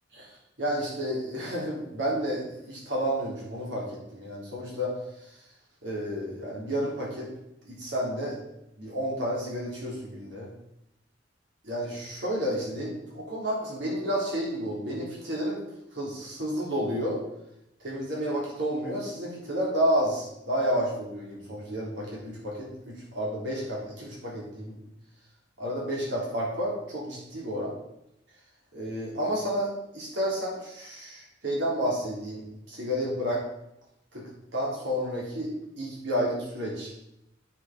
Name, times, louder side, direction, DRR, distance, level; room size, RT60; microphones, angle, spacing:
voice 1, 0.6-4.9 5.8-7.3 7.6-8.4 8.8-10.5 11.6-15.6 15.9-17.2 17.8-24.8 25.6-27.7 28.7-33.4 34.1-34.2 34.5-36.9, equal, 70° right, -4 dB, 3.7 m, -31 dB
8.3 x 6.8 x 5.2 m, 0.83 s
head